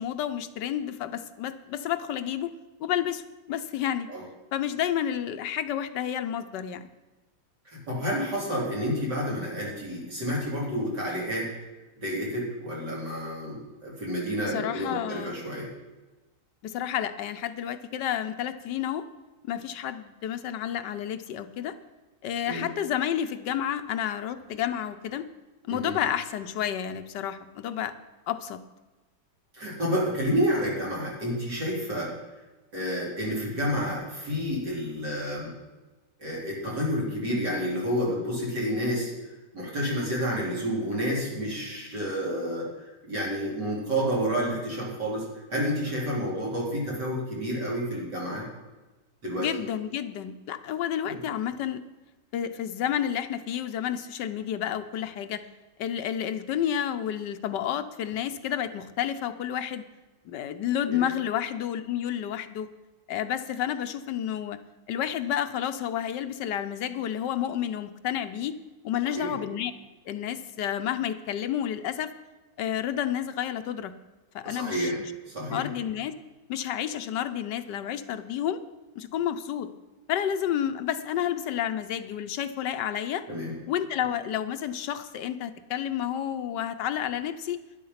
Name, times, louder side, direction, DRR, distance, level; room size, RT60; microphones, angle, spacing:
voice 1, 0.0-2.5 2.8-4.1 4.5-6.9 14.4-15.3 16.6-19.0 19.4-21.7 22.2-25.3 25.7-27.9 28.3-28.6 49.3-51.8 52.3-55.5 55.8-59.8 60.2-62.7 63.1-64.6 64.9-68.6 68.8-69.7 70.1-72.1 72.6-73.9 74.3-75.1 75.5-76.1 76.5-78.6 78.9-79.7 80.1-83.2 83.7-87.6, left 10 dB, 75° left, 10 dB, 1.4 m, -30 dB
voice 2, 7.6-11.5 12.0-15.7 22.5-22.7 25.7-26.0 29.5-32.1 32.7-35.5 36.2-39.1 39.5-48.5 49.2-49.6 51.0-51.2 60.8-61.0 69.0-69.3 74.4-75.0 75.3-75.7 83.3-83.5, equal, 70° right, -5 dB, 4.8 m, -30 dB
12.0 x 11.0 x 5.7 m, 1.2 s
omnidirectional pair, 1.9 m